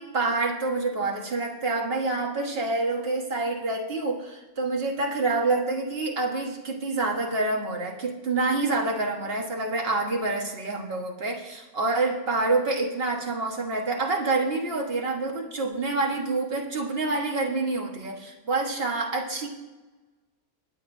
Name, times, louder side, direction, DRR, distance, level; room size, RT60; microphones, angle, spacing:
voice 1, 0.0-19.5, right 3 dB, 40° right, 1 dB, 1.7 m, -27 dB
22.0 x 9.0 x 2.7 m, 1.2 s
omnidirectional pair, 1.5 m